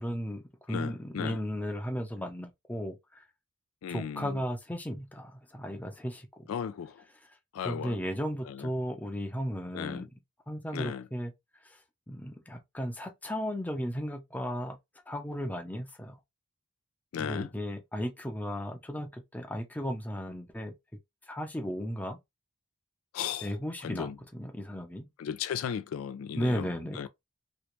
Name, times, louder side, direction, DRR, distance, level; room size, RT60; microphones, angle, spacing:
voice 1, 0.0-3.0 3.9-6.5 7.6-10.1 10.5-11.3 12.1-14.8 15.1-16.2 17.2-20.7 21.3-22.2 23.4-25.1 26.3-27.1, equal, 10° left, 0.6 m, -35 dB
voice 2, 0.7-1.4 3.8-4.4 6.5-7.0 7.5-8.0 8.5-8.7 9.7-10.1 10.7-11.1 17.1-17.5 23.1-23.5 23.8-24.2 25.2-26.7 27.0-27.1, left 8 dB, 70° left, 0.3 m, -35 dB
3.0 x 3.0 x 3.0 m
head